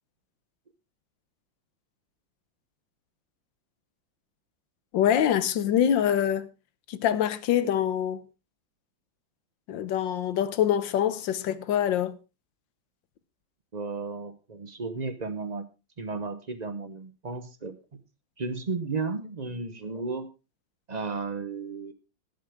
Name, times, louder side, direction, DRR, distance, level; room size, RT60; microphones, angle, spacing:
voice 1, 4.9-6.5 6.9-8.2 9.7-12.1, left 10 dB, 70° left, 1.5 m, -25 dB
voice 2, 13.7-15.7 16.0-17.8 18.4-20.3 20.9-21.9, right 4 dB, 40° right, 0.6 m, -34 dB
18.5 x 7.8 x 3.5 m
omnidirectional pair, 2.2 m